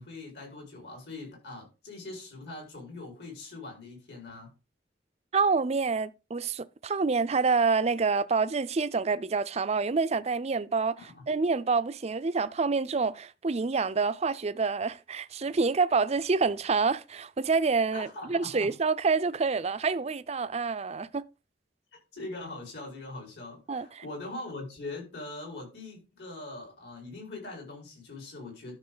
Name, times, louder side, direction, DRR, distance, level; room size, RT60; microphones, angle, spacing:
voice 1, 0.0-4.5 11.0-11.2 17.9-18.7 22.1-28.8, left 2 dB, 70° left, 5.3 m, -42 dB
voice 2, 5.3-11.0 11.3-21.2 23.7-24.0, right 4 dB, 35° right, 0.5 m, -27 dB
12.0 x 6.6 x 4.0 m
head